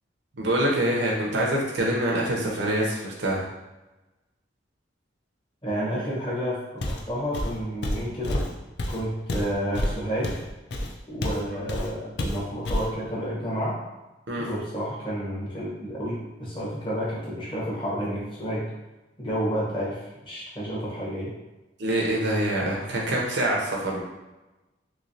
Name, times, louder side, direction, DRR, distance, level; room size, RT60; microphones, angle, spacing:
voice 1, 0.4-3.4 14.3-14.5 21.8-24.0, right 1 dB, 70° right, -3 dB, 0.6 m, -25 dB
voice 2, 5.6-6.6 6.9-8.4 8.9-10.3 11.1-13.8 14.4-18.6 19.2-20.0 20.2-21.3, equal, 25° left, -7 dB, 0.9 m, -30 dB
Walk footsteps, 6.8-7.1 7.3-11.4 11.7-11.9 12.2-12.9, left 1 dB, 60° left, 0.4 m, -29 dB
3.2 x 3.1 x 2.6 m, 1.1 s
head